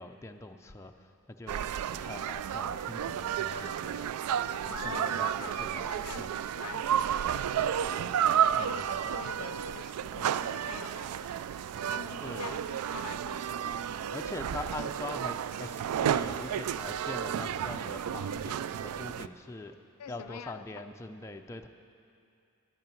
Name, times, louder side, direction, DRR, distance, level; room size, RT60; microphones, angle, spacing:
voice 1, 0.0-1.6 1.9-6.3 8.5-9.0 12.2-12.6 14.1-19.8 20.1-21.7, left 2 dB, 10° left, 4 dB, 0.4 m, -43 dB
sound 1, 1.5-19.3, right 9 dB, 85° right, 0.3 m, -32 dB
voice 2, 4.7-7.9 8.6-11.4 11.8-12.6 12.9-13.5 20.0-20.6, left 7 dB, 80° left, 13 dB, 0.4 m, -45 dB
11.0 x 8.7 x 9.0 m, 2.6 s
head